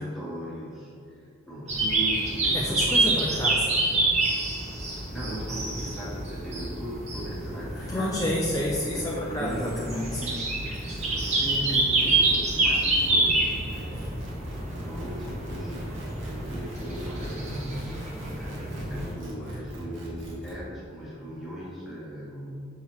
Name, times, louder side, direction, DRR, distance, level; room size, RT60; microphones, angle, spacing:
voice 1, 0.0-3.1 5.1-8.3 8.8-10.2 11.0-14.2 14.8-18.1 18.3-22.6, equal, ahead, -8 dB, 1.5 m, -38 dB
sound 1, 1.7-19.1, right 2 dB, 35° right, 0.9 m, -27 dB
voice 2, 2.5-3.8 7.9-10.4, left 1 dB, 15° left, -3 dB, 0.4 m, -29 dB
sound 2, 10.7-20.5, equal, 65° right, 1.2 m, -41 dB
5.7 x 5.7 x 3.0 m, 2.5 s
head